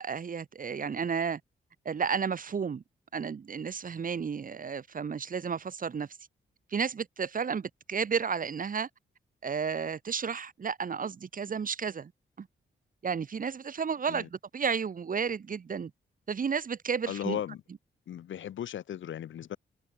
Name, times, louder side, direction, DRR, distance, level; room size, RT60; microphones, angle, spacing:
voice 1, 0.0-1.4 1.8-2.8 3.1-6.1 6.7-8.9 9.4-12.1 12.4-12.5 13.0-15.9 16.3-17.4, right 6 dB, 45° right, 0.7 m, -32 dB
voice 2, 17.1-17.6 18.1-19.6, left 10 dB, 70° left, 0.8 m, -36 dB
supercardioid pair, 50°, 20 cm